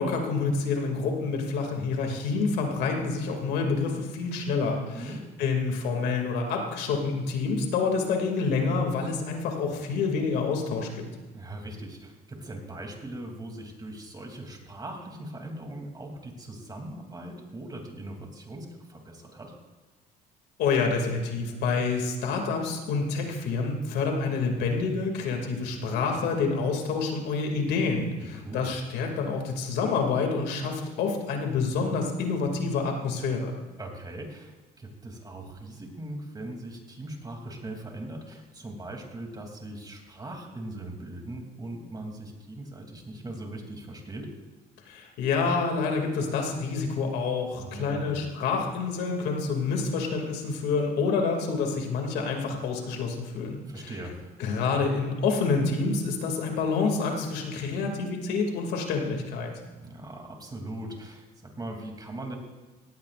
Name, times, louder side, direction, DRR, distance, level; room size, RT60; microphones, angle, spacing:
voice 1, 0.0-5.1 5.4-11.1 20.6-33.6 44.9-53.9 54.4-59.5, left 4 dB, 85° left, 2 dB, 2.5 m, -28 dB
voice 2, 4.9-5.3 11.3-19.6 28.3-28.7 33.8-44.3 47.6-48.2 53.6-54.4 59.8-62.4, right 1 dB, 25° right, 2 dB, 2.9 m, -40 dB
18.0 x 16.0 x 2.5 m, 1.3 s
cardioid pair, 110°, 17 cm